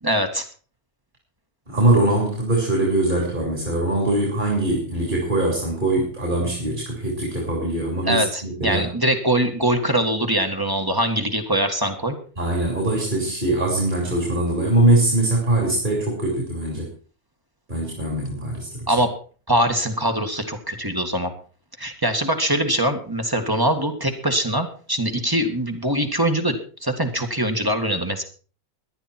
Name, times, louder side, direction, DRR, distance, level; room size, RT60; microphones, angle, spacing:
voice 1, 0.0-0.5 8.1-12.2 18.9-19.1 19.5-21.3 21.8-28.2, right 1 dB, 20° right, 5 dB, 2.0 m, -23 dB
voice 2, 1.7-8.9 12.4-16.9 17.7-18.9, right 2 dB, 45° right, -1 dB, 4.2 m, -22 dB
18.5 x 11.5 x 4.4 m, 0.40 s
omnidirectional pair, 1.1 m